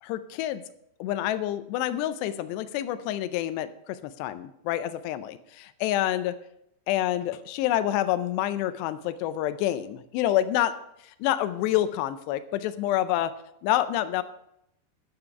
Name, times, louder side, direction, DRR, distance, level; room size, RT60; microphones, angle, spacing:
voice 1, 0.0-0.6 1.0-6.4 6.9-10.7 11.0-13.3 13.6-14.2, left 13 dB, 85° left, 13 dB, 2.7 m, -27 dB
11.5 x 7.0 x 5.7 m, 0.79 s
omnidirectional pair, 4.9 m